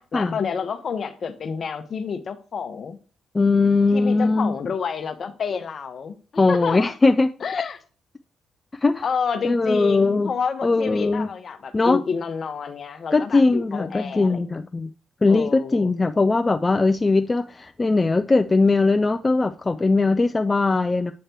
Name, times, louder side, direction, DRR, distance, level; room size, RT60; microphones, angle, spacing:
voice 1, 0.0-3.0 3.9-6.2 6.5-6.9 7.4-7.8 9.0-14.5 15.3-15.9, left 6 dB, 55° left, 0.8 m, -29 dB
voice 2, 3.3-4.6 6.4-7.3 8.8-9.0 9.4-10.3 10.6-11.3 11.7-12.0 13.1-14.9 15.2-21.1, left 3 dB, 30° left, 0.3 m, -20 dB
7.9 x 3.2 x 4.4 m
supercardioid pair, 60°, 0 cm